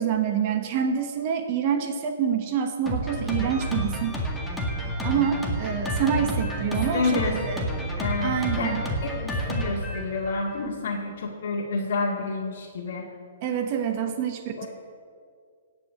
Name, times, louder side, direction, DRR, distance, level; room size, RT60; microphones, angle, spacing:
voice 1, 0.0-4.2 5.0-7.7 8.2-8.8 13.4-14.7, right 8 dB, 40° right, 6 dB, 1.2 m, -27 dB
Drum kit, 2.9-10.7, equal, 5° left, 1.8 m, -30 dB
voice 2, 6.9-7.4 8.0-13.1 14.6-14.7, left 3 dB, 65° left, -3 dB, 2.1 m, -29 dB
17.5 x 5.9 x 8.4 m, 2.1 s
hypercardioid pair, 150°, 0 cm